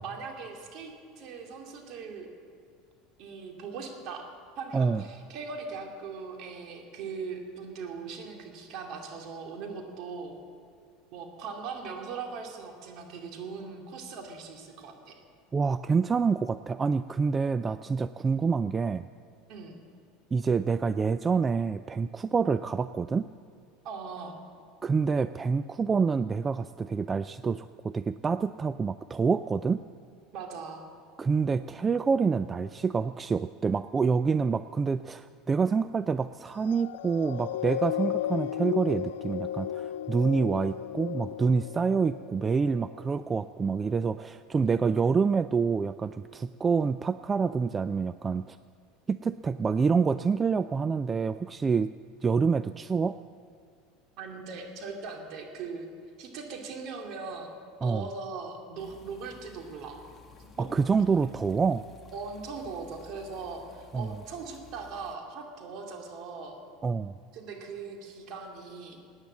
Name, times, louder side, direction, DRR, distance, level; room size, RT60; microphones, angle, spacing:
voice 1, 0.0-2.3 3.2-4.3 4.6-10.4 11.1-15.2 19.5-19.7 23.8-24.3 30.3-30.8 54.2-55.9 56.2-57.5 57.8-60.0 60.4-60.7 62.1-66.6 67.3-69.0, right 5 dB, 55° right, 2 dB, 2.7 m, -40 dB
voice 2, 15.5-19.1 20.3-23.3 24.8-29.8 31.2-48.6 49.1-51.9 52.2-53.2 57.8-58.1 60.6-61.8 63.9-64.1 66.8-67.1, right 5 dB, 25° right, 13 dB, 0.3 m, -27 dB
sound 1, 36.6-43.3 43.9-44.0, left 11 dB, 85° left, 0.3 m, -35 dB
sound 2, 58.8-65.2, left 6 dB, 30° left, 1.3 m, -54 dB
17.5 x 9.6 x 7.6 m, 2.3 s
supercardioid pair, 105°, 0 cm